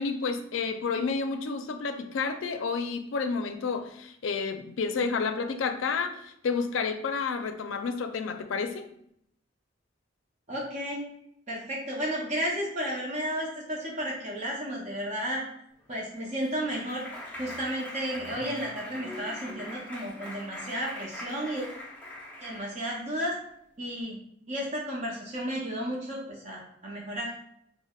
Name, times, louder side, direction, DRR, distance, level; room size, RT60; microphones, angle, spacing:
voice 1, 0.0-8.8, left 5 dB, 85° left, 8 dB, 0.4 m, -30 dB
voice 2, 10.5-11.0 11.5-15.4 15.9-17.0 17.4-21.6 22.4-23.3 23.8-24.2 24.5-27.3, equal, 40° right, -3 dB, 0.6 m, -33 dB
Clapping, 15.9-23.1, left 1 dB, 10° left, 0.5 m, -42 dB
5.2 x 2.0 x 2.3 m, 0.73 s
head